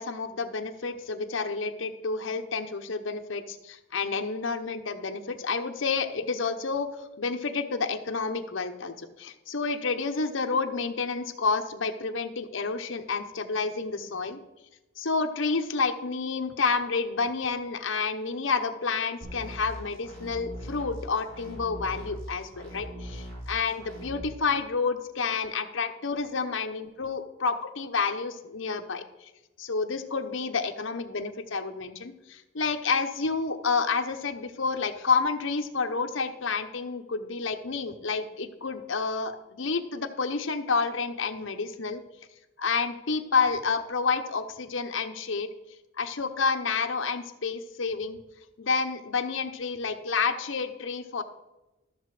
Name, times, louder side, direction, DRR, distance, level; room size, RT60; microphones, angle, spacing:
voice 1, 0.0-14.4 15.0-29.0 29.6-42.0 42.6-45.5 46.0-48.2 48.6-51.2, left 4 dB, 75° left, 6 dB, 0.9 m, -29 dB
sound 1, 19.2-24.2, equal, 85° right, 4.1 m, -41 dB
13.0 x 6.7 x 4.9 m, 1.0 s
head